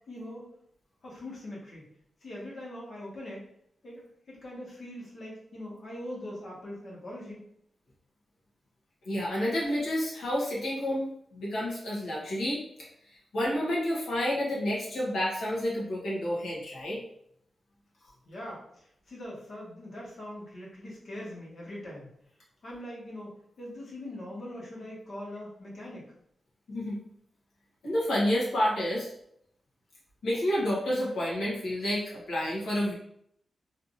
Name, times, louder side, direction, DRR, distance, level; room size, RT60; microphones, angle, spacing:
voice 1, 0.1-0.5 1.0-1.8 2.2-3.5 3.8-7.4 18.2-22.1 22.6-23.3 23.6-26.0, left 1 dB, 60° left, -5 dB, 1.3 m, -42 dB
voice 2, 9.0-12.6 13.3-17.0 26.7-26.9 27.8-29.1 30.2-32.9, equal, 90° left, -6 dB, 1.3 m, -29 dB
3.3 x 2.8 x 2.6 m, 0.70 s
wide cardioid pair, 95°, 0 cm